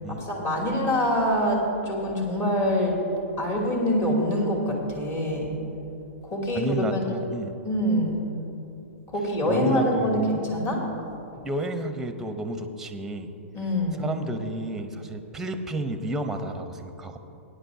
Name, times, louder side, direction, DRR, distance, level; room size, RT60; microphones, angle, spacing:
voice 1, 0.1-3.0 3.4-5.5 6.2-7.2 7.6-8.2 9.1-10.8 13.5-14.1, equal, 30° left, -2 dB, 2.8 m, -25 dB
voice 2, 6.5-7.5 9.5-10.3 11.4-13.3 14.0-17.2, right 2 dB, 5° right, 8 dB, 0.8 m, -31 dB
18.0 x 9.9 x 2.7 m, 2.8 s
hypercardioid pair, 115°, 7 cm